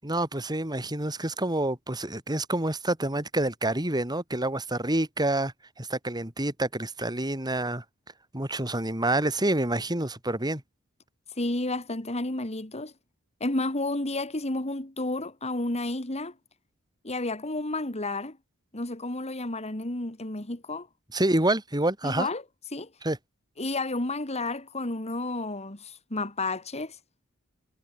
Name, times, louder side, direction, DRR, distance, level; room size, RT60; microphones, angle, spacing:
voice 1, 0.0-7.8 8.3-10.6 21.1-22.3 23.0-23.2, right 1 dB, 20° right, 4.2 m, -28 dB
voice 2, 11.4-12.9 13.4-16.3 17.0-18.4 18.7-20.9 22.0-22.4 22.7-22.9 23.6-27.0, left 2 dB, 30° left, 2.5 m, -31 dB
head